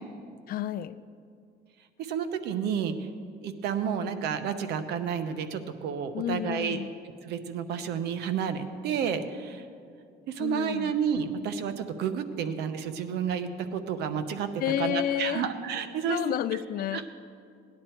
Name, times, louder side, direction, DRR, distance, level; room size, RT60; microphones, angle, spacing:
voice 1, 0.5-1.0 6.1-6.9 10.4-10.9 14.6-15.5 16.1-17.1, left 11 dB, 60° left, 15 dB, 0.5 m, -30 dB
voice 2, 2.0-3.1 3.4-6.8 7.2-9.6 10.3-14.5 14.8-16.2 16.9-17.1, right 7 dB, 80° right, 10 dB, 0.9 m, -30 dB
17.5 x 10.5 x 4.5 m, 2.3 s
cardioid pair, 110°, 17 cm